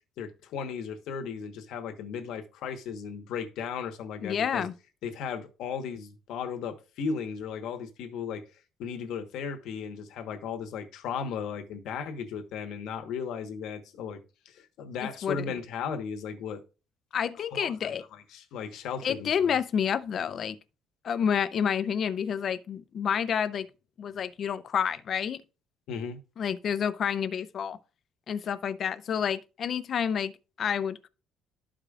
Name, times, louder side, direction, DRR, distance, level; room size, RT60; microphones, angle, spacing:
voice 1, 0.2-4.7 5.0-8.4 8.8-14.2 14.4-16.6 17.5-17.9 18.3-19.5 25.9-26.2, left 6 dB, 70° left, 1.1 m, -36 dB
voice 2, 4.2-4.7 15.0-15.4 17.1-18.0 19.0-20.6 21.0-23.7 24.0-25.4 26.4-27.8 28.3-30.3 30.6-31.1, left 7 dB, 40° left, 0.5 m, -29 dB
13.0 x 5.0 x 2.4 m
cardioid pair, 160°, 0 cm